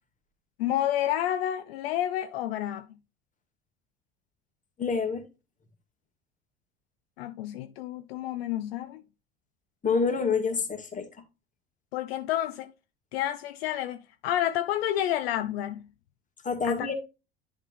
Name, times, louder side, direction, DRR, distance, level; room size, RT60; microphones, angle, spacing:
voice 1, 0.6-2.9 7.2-9.0 11.9-12.7 13.1-15.8 16.6-16.9, left 12 dB, 65° left, 0.6 m, -29 dB
voice 2, 4.8-5.2 9.8-11.1 16.4-16.9, left 5 dB, 25° left, 1.8 m, -27 dB
10.5 x 3.5 x 4.0 m
figure-of-eight pair, 65°, 33 cm